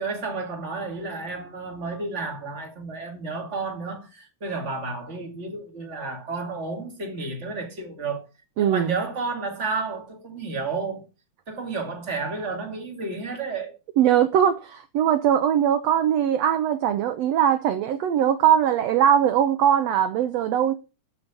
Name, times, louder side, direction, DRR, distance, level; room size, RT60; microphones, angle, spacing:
voice 1, 0.0-8.2 8.6-11.1 11.5-13.8, right 4 dB, 25° right, 2.3 m, -31 dB
voice 2, 8.6-8.9 14.0-20.7, right 9 dB, 70° right, 1.7 m, -21 dB
13.0 x 5.1 x 6.0 m
omnidirectional pair, 3.7 m